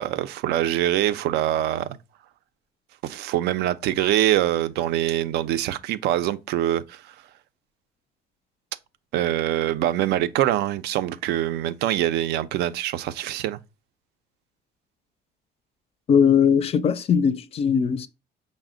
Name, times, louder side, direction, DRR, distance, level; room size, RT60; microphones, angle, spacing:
voice 1, 0.0-2.0 3.0-7.0 9.1-13.6, right 12 dB, 75° right, 0.4 m, -24 dB
voice 2, 16.1-18.1, left 7 dB, 35° left, 0.4 m, -20 dB
5.0 x 2.1 x 3.6 m
cardioid pair, 110°, 17 cm